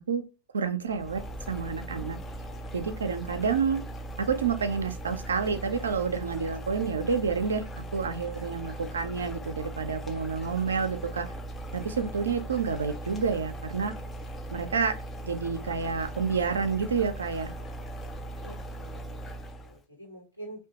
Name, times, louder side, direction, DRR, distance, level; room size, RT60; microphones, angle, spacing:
voice 1, 0.5-1.2 1.5-2.2 2.7-3.8 4.2-7.7 7.9-11.3 11.7-13.9 14.5-14.9 15.2-17.5, right 5 dB, 70° right, 0.4 m, -29 dB
sound 1, 0.9-19.8, right 1 dB, 20° left, 0.3 m, -39 dB
voice 2, 18.4-20.7, right 1 dB, 85° left, 1.1 m, -47 dB
2.8 x 2.2 x 2.7 m
figure-of-eight pair, 90°, 0 cm